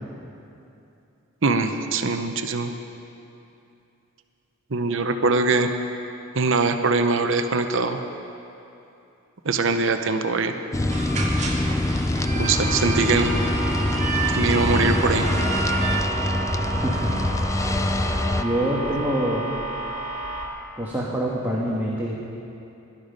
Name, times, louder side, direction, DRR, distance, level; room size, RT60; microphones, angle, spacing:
voice 1, 1.4-2.7 4.7-5.7 6.4-8.0 9.4-10.5 12.4-13.3 14.3-15.3, right 3 dB, 65° right, 7 dB, 0.8 m, -22 dB
sound 1, 10.7-18.4, left 1 dB, 15° left, 0.4 m, -24 dB
sound 2, 10.9-16.0, right 3 dB, 35° right, 1.6 m, -30 dB
sound 3, 12.4-20.4, right 3 dB, 70° left, 3.4 m, -32 dB
voice 2, 16.7-17.1 18.3-19.5 20.8-22.1, right 1 dB, 10° right, -5 dB, 1.4 m, -25 dB
17.0 x 12.0 x 5.3 m, 2.7 s
head